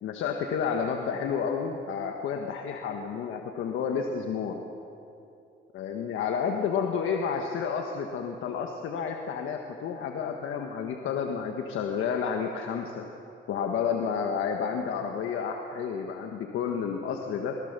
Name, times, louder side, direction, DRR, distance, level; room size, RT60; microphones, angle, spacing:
voice 1, 0.0-4.6 5.7-13.1 13.5-17.6, left 6 dB, 80° left, 3 dB, 1.5 m, -30 dB
24.5 x 18.0 x 6.8 m, 2.7 s
cardioid pair, 90°, 20 cm